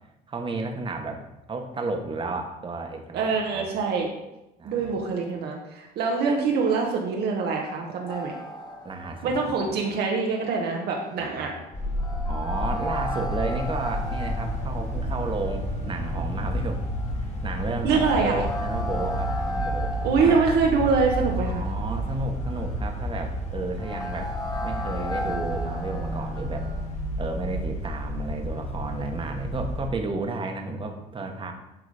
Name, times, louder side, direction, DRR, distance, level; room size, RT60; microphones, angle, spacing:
voice 1, 0.3-1.2 1.5-3.7 4.6-4.9 8.8-9.7 11.2-11.5 12.3-16.8 17.2-20.4 21.4-24.3 24.6-26.7 27.2-31.5, right 3 dB, 30° right, 4 dB, 1.3 m, -32 dB
voice 2, 3.1-4.1 4.6-8.3 9.2-11.5 17.8-18.4 20.0-21.6, right 4 dB, 75° right, 0 dB, 1.4 m, -24 dB
sound 1, 8.1-26.9, left 1 dB, 25° left, 1.4 m, -37 dB
sound 2, 11.7-29.9, equal, 45° left, 2.0 m, -31 dB
11.5 x 3.8 x 5.0 m, 0.93 s
cardioid pair, 110°, 17 cm